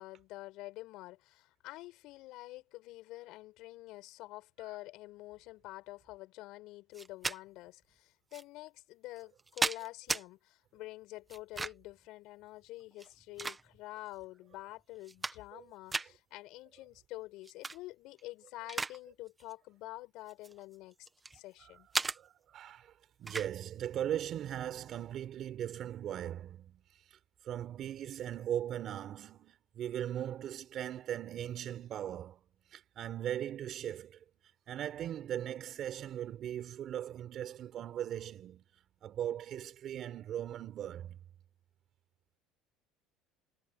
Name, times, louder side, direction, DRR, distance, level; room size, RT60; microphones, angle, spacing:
voice 1, 0.0-21.1 21.3-21.9, left 18 dB, 65° left, 7.5 m, -48 dB
sound 1, 6.9-7.4 8.3-8.4 9.2-10.2 11.3-11.9 12.9-14.0 14.5-14.6 15.0-15.6 15.9-16.1 17.4-17.8 18.2-19.0 19.3-19.5 20.3-21.4 21.9-22.2 23.3-23.5, right 3 dB, 15° right, 1.2 m, -36 dB
voice 2, 22.1-22.9 23.2-26.8 27.1-27.2 27.4-32.4 32.7-34.2 34.7-38.6 39.0-41.2, right 11 dB, 45° right, 4.5 m, -39 dB
cardioid pair, 140°, 0 cm